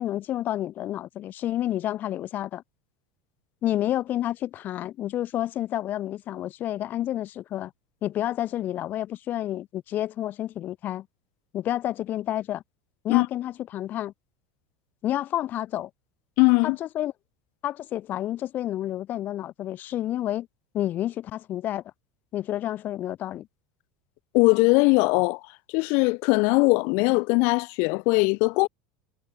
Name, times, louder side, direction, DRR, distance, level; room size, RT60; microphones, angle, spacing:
voice 1, 0.0-2.6 3.6-7.7 8.0-11.1 11.5-12.6 13.0-14.1 15.0-15.9 16.6-17.1 17.6-20.5 20.7-21.8 22.3-23.5, left 13 dB, 45° left, 2.5 m, -29 dB
voice 2, 16.4-16.8 24.3-25.4 25.7-28.7, left 31 dB, 60° left, 0.5 m, -20 dB
hypercardioid pair, 95°, 4 cm